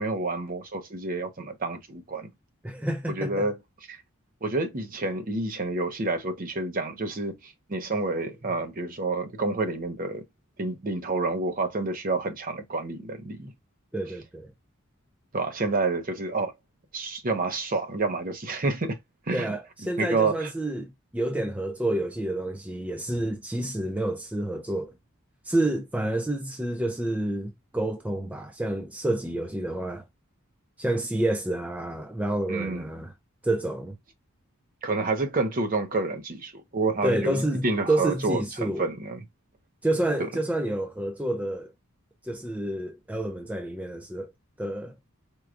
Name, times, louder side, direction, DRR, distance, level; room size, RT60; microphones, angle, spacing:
voice 1, 0.0-2.3 3.1-3.6 3.9-4.0 4.4-10.2 10.6-13.5 15.3-16.5 16.9-19.0 19.3-19.5 20.0-20.5 32.5-32.9 34.8-39.2, right 3 dB, 40° right, 0.7 m, -29 dB
voice 2, 2.6-3.5 13.9-14.5 19.3-24.9 25.4-30.0 30.8-33.1 33.4-34.0 37.0-38.9 39.8-41.7 42.2-44.3 44.6-45.0, right 1 dB, 5° right, 0.4 m, -29 dB
4.6 x 2.3 x 2.4 m
head